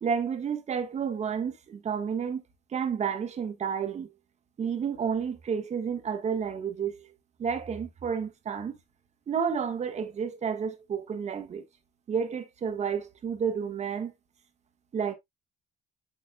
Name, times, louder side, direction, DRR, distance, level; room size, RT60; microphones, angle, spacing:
voice 1, 0.0-2.4 2.7-4.1 4.6-6.9 7.4-8.8 9.3-11.6 12.1-14.1 14.9-15.1, right 7 dB, 40° right, 1.4 m, -30 dB
7.3 x 7.0 x 2.2 m
cardioid pair, 110°, 17 cm